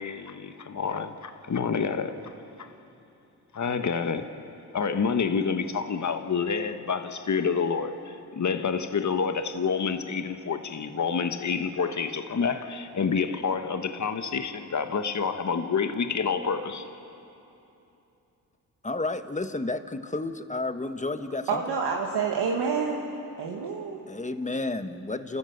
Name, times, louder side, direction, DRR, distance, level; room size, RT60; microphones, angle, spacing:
voice 1, 0.0-2.1 2.6-2.7 3.5-4.3 4.7-16.9, left 5 dB, 45° left, 8 dB, 1.4 m, -28 dB
voice 2, 18.8-21.6 24.1-25.4, left 2 dB, 20° left, 9 dB, 1.4 m, -31 dB
voice 3, 21.5-23.1 23.4-24.0, right 5 dB, 80° right, -1 dB, 1.9 m, -28 dB
29.0 x 14.0 x 8.0 m, 2.9 s
supercardioid pair, 50°, 40 cm